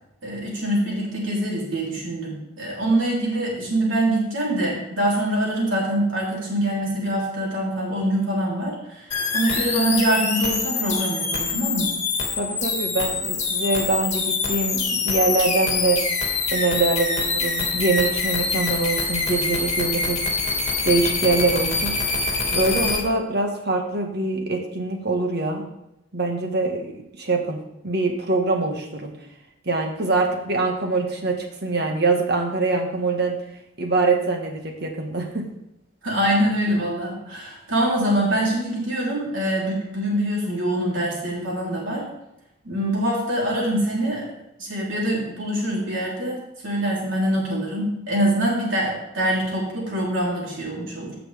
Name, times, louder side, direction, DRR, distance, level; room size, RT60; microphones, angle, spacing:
voice 1, 0.2-9.1 9.3-11.9 36.0-42.1 42.6-44.3 44.6-51.1, right 1 dB, 70° right, -4 dB, 3.5 m, -24 dB
sound 1, 9.1-23.0, left 4 dB, 35° left, 2.1 m, -25 dB
voice 2, 12.4-16.0 16.5-20.2 20.8-21.9 22.5-25.6 26.1-26.9 27.2-29.1 29.6-33.4 33.8-35.5, right 3 dB, 55° right, 2 dB, 1.6 m, -24 dB
15.5 x 5.9 x 3.5 m, 0.86 s
head